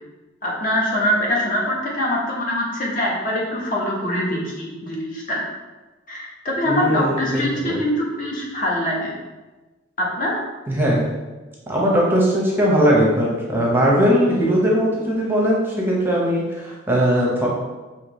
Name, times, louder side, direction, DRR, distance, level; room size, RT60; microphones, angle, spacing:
voice 1, 0.4-5.4 6.1-9.1 10.0-10.3, equal, 45° left, -3 dB, 1.0 m, -23 dB
voice 2, 6.7-7.8 10.7-11.1 11.7-17.5, equal, 10° right, -4 dB, 0.7 m, -19 dB
5.7 x 2.9 x 3.0 m, 1.2 s
head